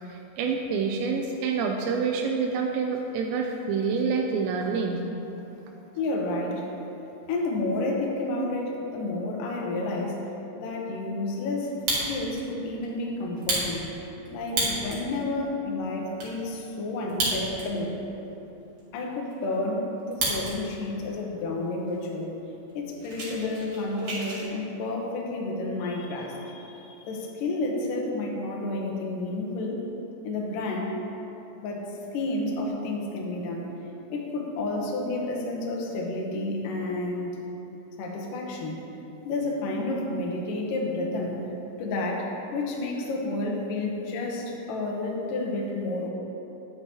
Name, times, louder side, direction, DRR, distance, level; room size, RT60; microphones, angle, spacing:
voice 1, 0.0-5.0, right 5 dB, 90° right, 1 dB, 2.8 m, -27 dB
voice 2, 5.4-7.0 7.3-10.3 10.6-11.7 12.1-13.8 14.3-18.0 18.9-22.3 22.7-29.8 30.2-30.9 31.6-33.7 34.1-37.4 38.0-38.8 39.2-41.5 41.8-46.1, left 2 dB, 75° left, -1 dB, 2.1 m, -30 dB
Fire, 11.6-12.4 12.8-12.9 13.3-15.1 15.6-15.7 15.8-16.3 17.0-17.8 18.2-18.3 18.8-20.5 20.9-21.3 21.9-22.0 22.2-22.4 22.7-24.4, right 2 dB, 50° right, 2.1 m, -30 dB
9.8 x 9.6 x 3.0 m, 3.0 s
omnidirectional pair, 5.0 m